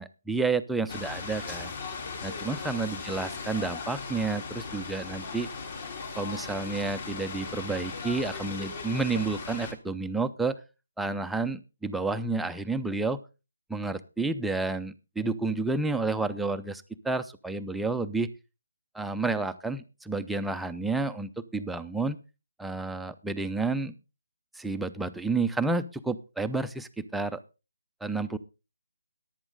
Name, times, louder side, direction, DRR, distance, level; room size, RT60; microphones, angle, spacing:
voice 1, 0.0-1.7 2.2-5.5 6.2-10.6 11.0-13.2 13.7-18.3 18.9-22.2 22.6-23.9 24.6-27.4 28.0-28.4, right 3 dB, ahead, 9 dB, 0.5 m, -30 dB
sound 1, 0.9-9.7, left 4 dB, 45° left, 3.3 m, -38 dB
14.5 x 11.0 x 3.7 m, 0.30 s
figure-of-eight pair, 155°, 0 cm